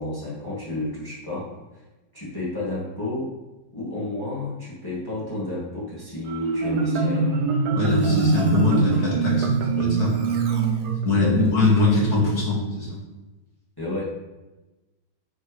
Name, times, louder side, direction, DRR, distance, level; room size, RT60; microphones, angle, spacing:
voice 1, 0.0-1.8 2.1-3.3 3.7-7.4 11.2-11.5 11.8-11.9 13.8-14.0, left 2 dB, 10° left, -8 dB, 2.2 m, -31 dB
Marimba xylophone, 6.3-11.4, right 4 dB, 65° right, 1.4 m, -23 dB
voice 2, 7.7-10.1 11.0-13.0, left 2 dB, 55° left, -5 dB, 2.8 m, -22 dB
9.1 x 5.4 x 3.4 m, 1.1 s
omnidirectional pair, 2.0 m